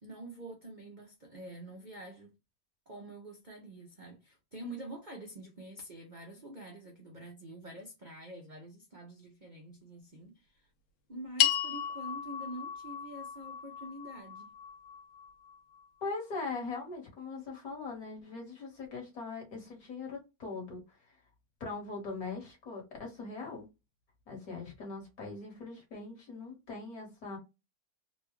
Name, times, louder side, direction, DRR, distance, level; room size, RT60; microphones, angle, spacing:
voice 1, 0.0-2.3 2.9-10.7 11.1-14.5, right 1 dB, 75° right, 0.4 m, -46 dB
Bell hit, 11.4-15.9, left 10 dB, 80° left, 1.5 m, -34 dB
voice 2, 16.0-21.0 21.6-23.7 24.3-27.4, left 3 dB, 50° left, 1.9 m, -41 dB
4.0 x 2.3 x 3.1 m
omnidirectional pair, 2.0 m